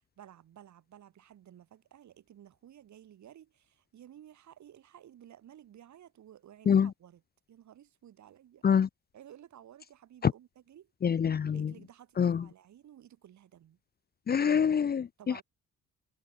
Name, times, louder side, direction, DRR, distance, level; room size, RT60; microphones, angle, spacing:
voice 1, 0.0-7.2 7.5-8.6 9.1-10.9 11.5-13.8 15.2-15.4, right 11 dB, 70° right, 5.4 m, -54 dB
voice 2, 11.0-11.7 12.2-12.4 14.3-15.4, left 7 dB, 30° left, 0.6 m, -25 dB
cardioid pair, 90°, 30 cm